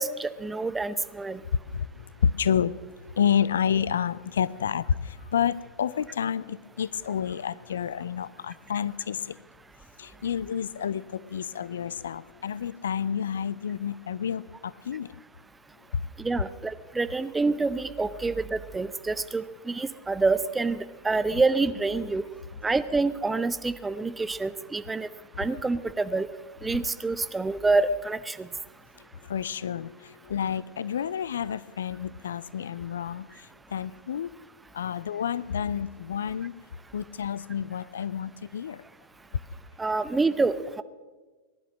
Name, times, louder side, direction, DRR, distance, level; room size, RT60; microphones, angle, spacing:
voice 1, 0.0-1.4 16.2-22.2 22.6-25.1 25.4-26.3 26.6-28.5 39.8-40.8, right 3 dB, 10° right, 13 dB, 0.6 m, -27 dB
voice 2, 1.7-9.4 10.0-15.1 15.9-16.1 25.4-25.5 29.0-34.3 34.7-36.5 36.9-38.8, left 8 dB, 65° left, 19 dB, 0.4 m, -30 dB
19.0 x 11.0 x 6.1 m, 1.3 s
figure-of-eight pair, 90°, 0 cm